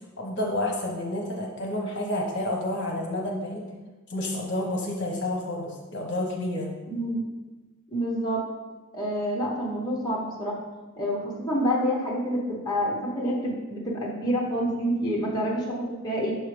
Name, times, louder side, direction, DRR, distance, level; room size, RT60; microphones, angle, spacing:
voice 1, 0.2-3.6 4.1-6.7, left 1 dB, 50° left, 0 dB, 1.0 m, -29 dB
voice 2, 6.9-7.3 7.9-8.4 8.9-10.6 11.0-16.3, equal, 20° left, -4 dB, 0.8 m, -28 dB
6.6 x 4.7 x 3.2 m, 1.2 s
head